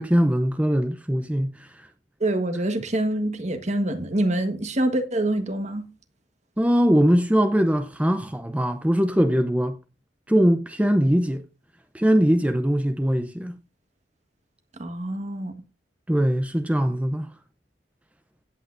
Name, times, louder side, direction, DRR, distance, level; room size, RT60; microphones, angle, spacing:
voice 1, 0.0-1.9 6.6-9.8 10.3-11.4 11.9-13.6 16.1-17.3, equal, 10° right, 0.6 m, -21 dB
voice 2, 2.2-5.9 14.8-15.5, right 1 dB, 40° right, 1.4 m, -25 dB
16.5 x 8.3 x 2.6 m
head